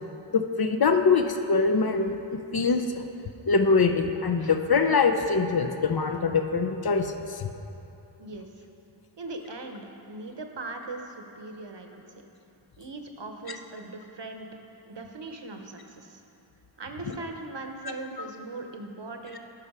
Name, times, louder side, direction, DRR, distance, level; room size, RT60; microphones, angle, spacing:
voice 1, 0.3-2.2 2.5-3.0 3.5-7.1 7.4-7.5 13.5-13.6 17.0-17.1, left 4 dB, 50° left, 5 dB, 0.6 m, -23 dB
voice 2, 9.2-11.9 12.8-14.5 14.9-16.2 16.8-19.4, right 2 dB, 55° right, 4 dB, 0.9 m, -39 dB
11.0 x 5.5 x 4.8 m, 2.9 s
wide cardioid pair, 55°, 50 cm